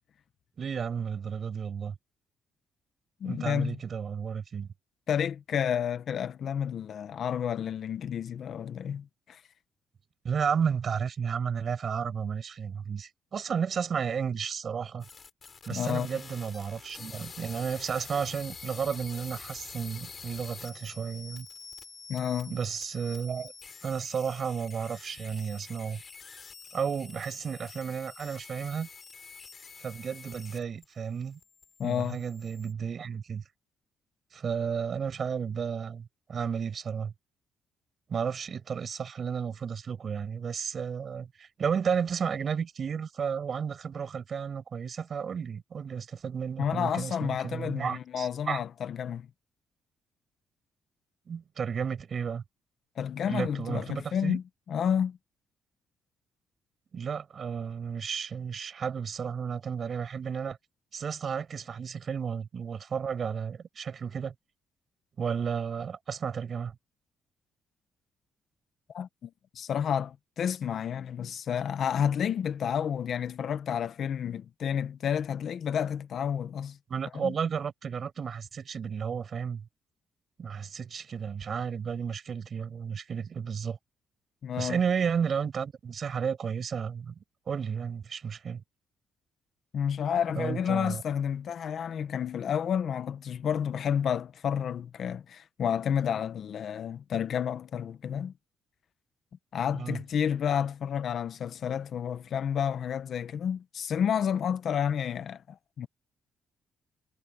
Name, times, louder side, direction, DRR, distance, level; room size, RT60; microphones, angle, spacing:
voice 1, 0.6-1.9 3.2-4.7 10.2-15.1 15.7-21.5 22.5-23.5 23.8-26.0 26.7-28.9 29.8-31.4 31.8-33.4 34.3-37.1 38.1-48.6 51.3-52.4 53.3-54.4 56.9-60.6 60.9-64.3 65.2-66.7 76.9-79.6 80.4-83.8 84.6-87.2 87.5-88.6 90.4-91.0 99.7-100.0, right 7 dB, 45° right, 5.4 m, -33 dB
voice 2, 3.2-3.8 5.1-9.4 15.7-16.1 22.1-22.5 31.8-32.2 46.6-49.3 53.0-55.2 68.9-76.8 77.2-77.3 84.4-84.8 89.7-98.3 99.5-105.9, left 8 dB, 55° left, 1.0 m, -30 dB
sound 1, 15.0-30.8 31.1-32.7, left 5 dB, 35° left, 6.8 m, -47 dB
cardioid pair, 125°, 0 cm